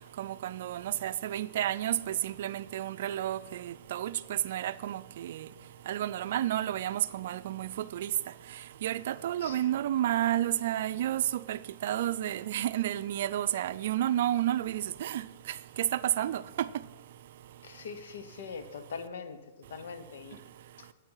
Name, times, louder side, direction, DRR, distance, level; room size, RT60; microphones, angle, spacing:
voice 1, 0.2-5.5 5.9-8.1 8.8-15.2 15.8-16.4, right 12 dB, 65° right, 0.4 m, -31 dB
voice 2, 17.6-19.4 19.7-20.4 20.8-20.9, left 5 dB, 75° left, 0.9 m, -42 dB
8.9 x 8.3 x 5.6 m
hypercardioid pair, 130°, 0 cm